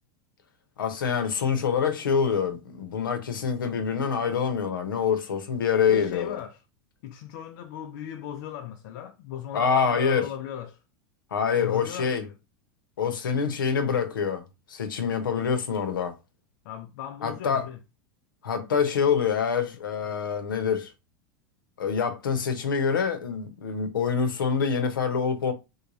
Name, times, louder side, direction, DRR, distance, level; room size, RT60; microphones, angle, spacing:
voice 1, 0.8-6.4 9.5-10.3 11.3-12.2 13.0-14.4 14.7-16.2 17.2-17.7 18.4-20.9 21.8-25.5, left 6 dB, 85° left, 0.8 m, -26 dB
voice 2, 5.9-6.6 7.0-10.8 11.5-12.3 16.6-17.8, left 10 dB, 65° left, 0.5 m, -37 dB
3.2 x 2.2 x 3.9 m
hypercardioid pair, 95°, 11 cm